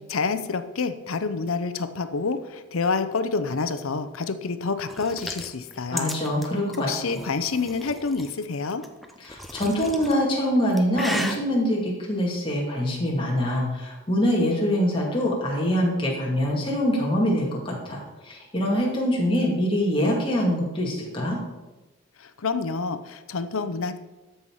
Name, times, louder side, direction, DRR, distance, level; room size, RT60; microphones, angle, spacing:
voice 1, 0.1-6.1 6.9-8.8 22.2-24.0, left 4 dB, 75° left, 11 dB, 0.7 m, -28 dB
sound 1, 4.9-8.3 8.8-10.2 10.6-11.4, equal, ahead, 0.5 m, -35 dB
voice 2, 5.9-7.2 9.2-21.4, equal, 25° left, -3 dB, 2.3 m, -24 dB
13.5 x 5.7 x 4.8 m, 1.1 s
head